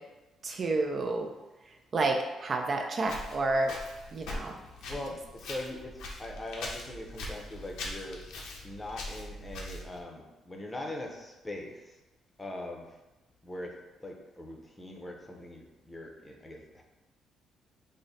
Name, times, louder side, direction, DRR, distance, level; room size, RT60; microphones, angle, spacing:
voice 1, 0.4-1.3 1.9-3.7 4.1-4.6, right 2 dB, 45° right, 3 dB, 0.4 m, -29 dB
Walk footsteps, 3.0-10.0, left 2 dB, 85° left, 0.6 m, -42 dB
voice 2, 4.9-8.2 8.6-11.8 12.4-12.8 13.4-13.7 14.0-16.8, left 1 dB, 15° left, 0 dB, 0.6 m, -41 dB
3.6 x 2.1 x 4.0 m, 1.1 s
cardioid pair, 90°, 0 cm